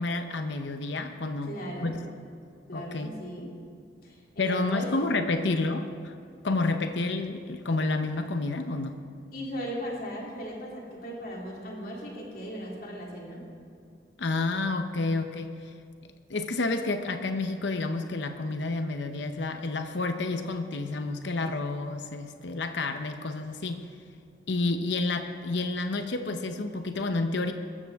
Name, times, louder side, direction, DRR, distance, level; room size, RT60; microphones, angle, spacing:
voice 1, 0.0-1.5 1.8-2.0 2.7-3.1 4.4-6.1 6.4-9.0 14.2-15.7 16.3-23.8 24.5-27.5, left 3 dB, 75° left, 7 dB, 0.8 m, -30 dB
voice 2, 1.4-2.0 2.7-3.5 4.0-4.9 5.3-5.6 9.3-13.4, equal, 50° left, -3 dB, 2.9 m, -37 dB
21.5 x 14.5 x 3.6 m, 2.3 s
head